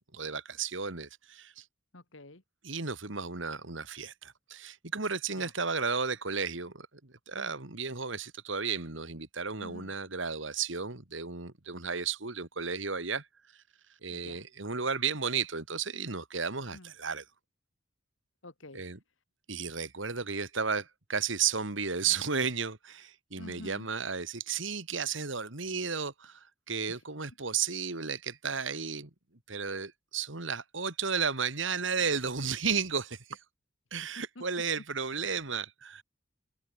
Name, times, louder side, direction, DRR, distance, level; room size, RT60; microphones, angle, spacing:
voice 1, 0.0-1.6 2.6-6.9 7.3-13.3 14.0-17.2 18.7-19.0 19.5-29.1 29.5-33.4 33.9-36.0, right 5 dB, 75° right, 2.4 m, -33 dB
voice 2, 1.9-2.4 5.4-5.5 9.6-9.9 14.1-14.4 16.7-16.9 18.4-18.8 23.4-23.9 26.9-27.0 34.4-34.5, left 1 dB, 80° left, 2.6 m, -48 dB
head